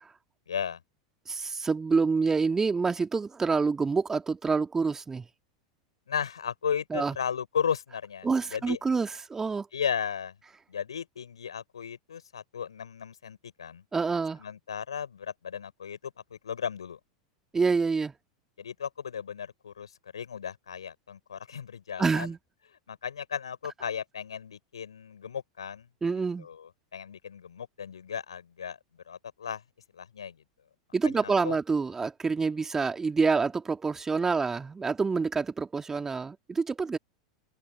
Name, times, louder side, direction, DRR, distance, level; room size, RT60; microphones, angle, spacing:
voice 1, 0.5-0.8 6.1-8.8 9.7-10.4 10.7-13.8 14.4-17.0 18.6-22.3 22.9-25.9 26.4-28.8 29.1-29.6 29.9-30.4 31.0-31.6, left 7 dB, 80° left, 4.4 m, -35 dB
voice 2, 1.3-5.2 6.9-7.1 8.2-9.7 13.9-14.4 17.5-18.1 22.0-22.4 26.0-26.5 30.9-37.0, right 4 dB, 15° right, 2.5 m, -27 dB
open air
figure-of-eight pair, 85°, 3 cm